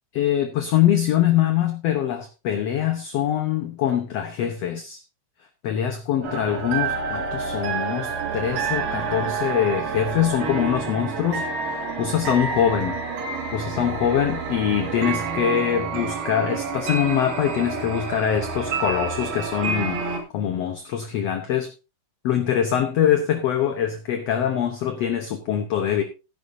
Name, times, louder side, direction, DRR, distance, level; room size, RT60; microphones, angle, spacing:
voice 1, 0.1-5.0 5.6-13.0 13.5-21.7 22.2-26.0, left 10 dB, 65° left, 1.8 m, -23 dB
sound 1, 6.2-20.2, right 5 dB, 80° right, 3.7 m, -28 dB
14.5 x 10.5 x 2.7 m
omnidirectional pair, 3.7 m